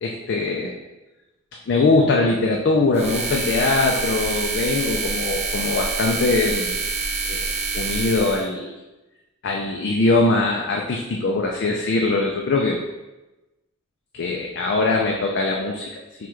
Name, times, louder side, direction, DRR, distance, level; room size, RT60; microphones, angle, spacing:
voice 1, 0.0-0.7 1.7-6.8 7.3-8.8 9.4-12.8 14.1-16.3, left 3 dB, 55° left, 0 dB, 0.4 m, -22 dB
sound 1, 2.9-8.5, right 4 dB, 30° right, 0.4 m, -26 dB
5.8 x 2.3 x 3.2 m, 1.1 s
head